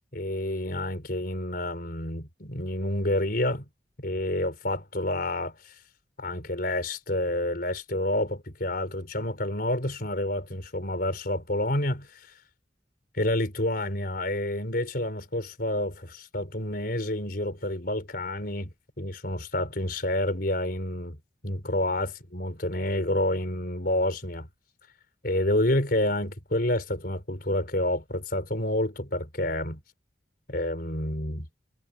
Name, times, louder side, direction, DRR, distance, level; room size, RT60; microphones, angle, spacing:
voice 1, 0.1-3.7 4.0-5.7 6.2-12.3 13.1-21.2 21.4-24.5 25.2-29.8 30.5-31.5, left 1 dB, 55° left, 4.7 m, -29 dB
head